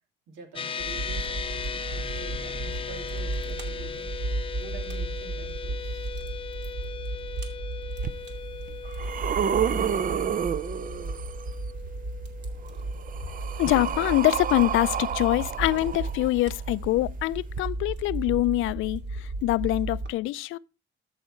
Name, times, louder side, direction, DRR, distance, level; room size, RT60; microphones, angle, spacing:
voice 1, 0.3-4.1 4.6-6.1, right 3 dB, 90° right, 2.9 m, -46 dB
sound 1, 0.6-14.2, left 6 dB, 25° left, 0.7 m, -38 dB
Fire, 0.8-20.1, right 2 dB, 60° right, 2.4 m, -34 dB
sound 2, 8.0-8.1 8.7-11.4 12.6-16.5 17.5-17.6, right 8 dB, 45° right, 0.6 m, -30 dB
voice 2, 13.6-20.6, left 17 dB, 85° left, 0.4 m, -25 dB
13.0 x 5.6 x 4.4 m
cardioid pair, 90°, 20 cm